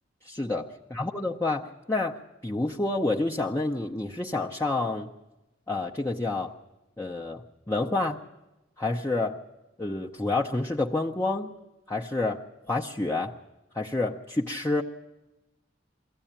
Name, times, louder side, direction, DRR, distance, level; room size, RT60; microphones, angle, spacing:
voice 1, 0.2-5.1 5.7-6.5 7.0-8.2 8.8-9.4 9.8-11.5 11.9-13.3 13.7-14.8, left 2 dB, 15° left, -1 dB, 0.8 m, -29 dB
23.0 x 16.0 x 8.8 m, 1.0 s
head